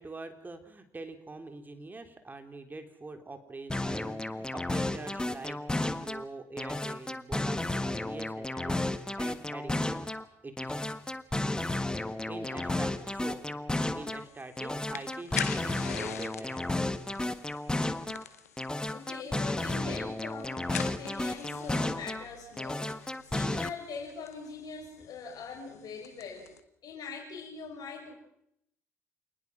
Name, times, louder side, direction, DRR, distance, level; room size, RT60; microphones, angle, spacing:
voice 1, 0.0-10.9 12.0-13.4 13.9-16.9, right 3 dB, 25° right, 7 dB, 3.3 m, -44 dB
sound 1, 3.7-6.2 6.6-10.2 10.6-14.2 14.6-18.2 18.6-22.2 22.6-23.7, left 2 dB, 10° left, 1.5 m, -33 dB
voice 2, 12.3-12.7 18.8-22.9 23.2-26.5 26.8-28.2, left 5 dB, 55° left, 1 dB, 5.8 m, -42 dB
sound 2, 14.1-26.6, left 8 dB, 90° left, 1.0 m, -44 dB
27.5 x 20.0 x 6.1 m, 0.76 s
hypercardioid pair, 55°, 8 cm